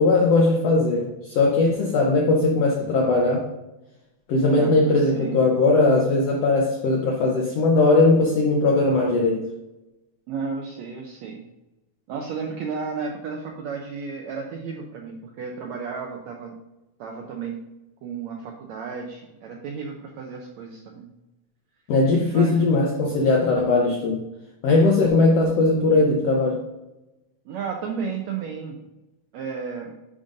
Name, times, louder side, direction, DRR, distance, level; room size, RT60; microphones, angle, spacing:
voice 1, 0.0-3.5 4.3-9.4 21.9-24.2 24.6-26.6, left 3 dB, 80° left, -1 dB, 1.4 m, -19 dB
voice 2, 4.3-5.4 10.3-11.4 12.1-16.6 17.0-17.6 18.0-21.1 22.3-22.7 27.4-28.8 29.3-29.9, right 5 dB, 85° right, 1 dB, 1.6 m, -33 dB
11.0 x 5.3 x 2.6 m, 0.98 s
omnidirectional pair, 4.0 m